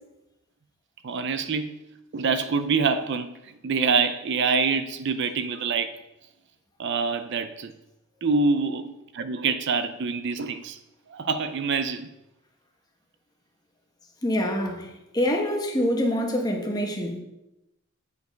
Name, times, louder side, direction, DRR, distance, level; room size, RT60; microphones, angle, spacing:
voice 1, 1.0-1.7 2.1-3.3 3.6-5.9 6.8-7.7 8.2-10.8 11.1-12.1, right 4 dB, 55° right, 0.5 m, -25 dB
voice 2, 14.2-17.2, equal, 20° left, 1.2 m, -26 dB
8.2 x 5.3 x 5.1 m
head